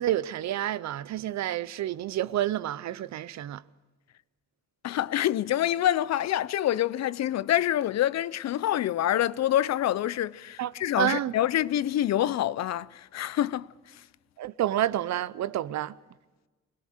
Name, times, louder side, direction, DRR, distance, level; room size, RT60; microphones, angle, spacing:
voice 1, 0.0-3.6 10.6-11.3 14.4-16.0, right 13 dB, 70° right, 0.7 m, -29 dB
voice 2, 4.8-13.7, left 12 dB, 65° left, 0.6 m, -26 dB
22.5 x 17.5 x 6.6 m
supercardioid pair, 70°, 29 cm